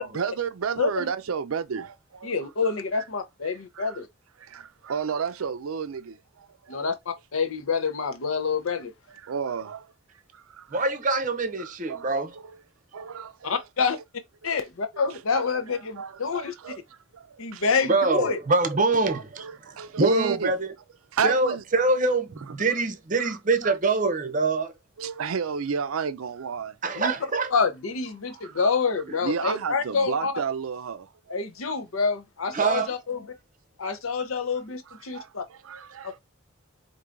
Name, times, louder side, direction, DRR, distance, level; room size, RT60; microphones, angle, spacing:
voice 1, 0.0-2.3 2.6-3.1 3.4-4.0 4.4-6.9 9.2-9.9 10.3-10.8 11.6-12.1 12.9-14.0 14.4-14.6 15.1-17.9 19.1-20.5 21.1-21.6 22.5-22.6 23.2-23.8 25.0-26.8 28.3-28.7 29.2-31.1 34.9-36.2, right 6 dB, 85° right, 0.5 m, -32 dB
voice 2, 0.8-1.1 2.2-4.1 6.7-8.9 13.4-14.0 14.4-16.5 17.4-18.4 26.9-27.1 27.5-30.3 31.3-33.2 33.8-35.4, left 5 dB, 85° left, 0.8 m, -27 dB
voice 3, 10.7-12.4 17.9-19.5 20.0-20.7 21.2-24.7 26.8-27.5 32.5-32.9, right 3 dB, 40° right, 0.6 m, -24 dB
4.6 x 2.7 x 2.5 m
head